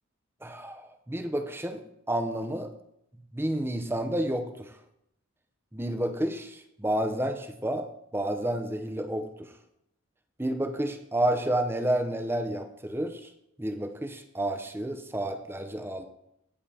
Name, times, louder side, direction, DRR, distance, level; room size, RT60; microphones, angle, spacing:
voice 1, 0.4-1.8 2.1-2.7 3.3-4.7 5.7-7.9 8.1-9.5 10.4-13.3 13.6-16.1, right 1 dB, 10° right, 6 dB, 0.7 m, -30 dB
17.0 x 7.4 x 2.9 m, 0.81 s
head